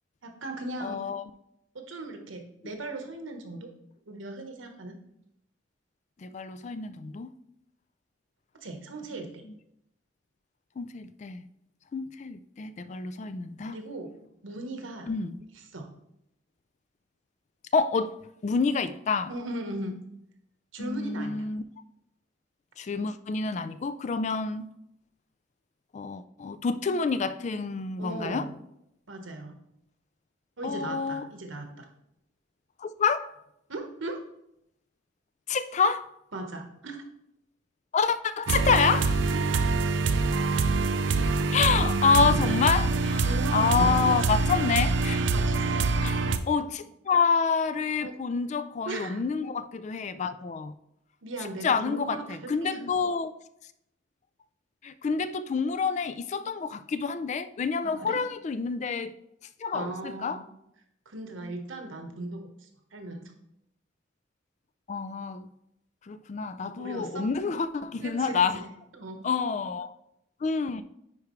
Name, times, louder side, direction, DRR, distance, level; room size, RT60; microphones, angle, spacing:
voice 1, 0.2-1.0 1.7-3.7 4.1-5.0 8.6-9.4 13.7-14.1 14.4-15.1 15.7-15.8 19.3-20.0 20.7-21.5 28.0-28.5 29.1-29.5 30.6-31.9 33.7-34.2 36.3-37.0 39.5-39.7 43.2-44.4 45.3-45.9 48.0-48.1 48.8-49.2 51.2-52.8 57.8-58.2 59.7-60.5 61.1-63.3 66.8-67.2 68.0-69.3, right 2 dB, 90° right, 1.2 m, -38 dB
voice 2, 0.8-1.2 6.2-7.3 9.4-9.5 10.8-11.5 11.9-13.8 15.1-15.4 17.7-18.1 18.4-19.3 20.8-21.6 22.8-24.7 25.9-28.5 30.6-31.3 32.8-33.3 35.5-36.1 37.9-39.3 41.5-45.2 46.0-50.7 51.4-53.3 54.8-59.1 59.6-60.4 64.9-65.5 66.1-68.6 69.2-69.9 70.4-70.8, left 5 dB, 35° left, 0.3 m, -28 dB
sound 1, 38.5-46.4, right 3 dB, 70° right, 0.5 m, -25 dB
9.7 x 4.6 x 3.1 m
head